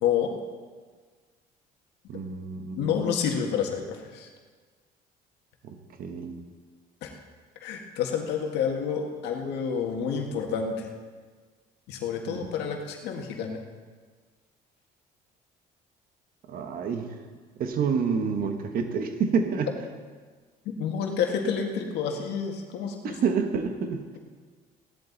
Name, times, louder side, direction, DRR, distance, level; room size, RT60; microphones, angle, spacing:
voice 1, 2.1-2.9 5.6-6.4 12.3-12.5 16.5-17.1 17.6-19.7 23.0-24.0, right 5 dB, 60° right, 6 dB, 1.3 m, -28 dB
voice 2, 2.8-4.3 7.0-7.1 7.6-10.9 11.9-13.6 20.7-23.1, left 7 dB, 85° left, 2 dB, 1.8 m, -29 dB
16.0 x 11.0 x 4.0 m, 1.5 s
cardioid pair, 110°, 17 cm